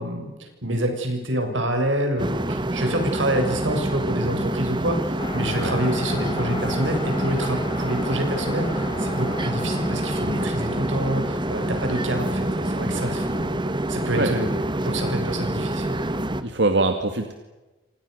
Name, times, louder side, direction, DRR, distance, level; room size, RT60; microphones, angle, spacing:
voice 1, 0.0-13.6 13.9-14.5 14.8-16.0, right 1 dB, 90° right, 5 dB, 7.3 m, -27 dB
sound 1, 2.2-16.4, right 1 dB, 25° right, 1.7 m, -26 dB
sound 2, 5.2-13.5, left 2 dB, 25° left, 3.3 m, -37 dB
voice 2, 16.4-17.3, right 2 dB, 65° right, 6 dB, 2.3 m, -23 dB
29.5 x 26.0 x 6.8 m, 1.1 s
head